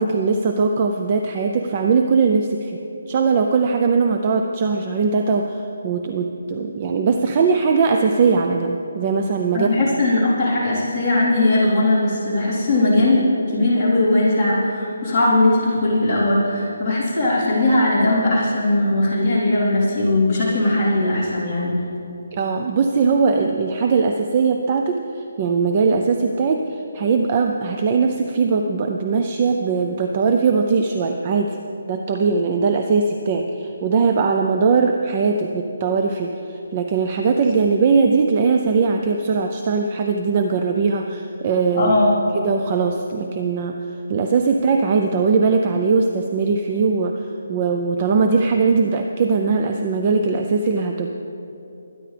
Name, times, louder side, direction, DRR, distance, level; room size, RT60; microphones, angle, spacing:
voice 1, 0.0-2.8 3.1-9.7 22.3-31.6 31.9-41.9 42.3-43.8 44.1-51.1, right 4 dB, 20° right, 4 dB, 0.4 m, -20 dB
voice 2, 9.5-13.2 13.5-21.7 41.8-42.1, left 2 dB, 5° left, -15 dB, 3.6 m, -19 dB
23.0 x 10.0 x 3.3 m, 2.8 s
hypercardioid pair, 175°, 0 cm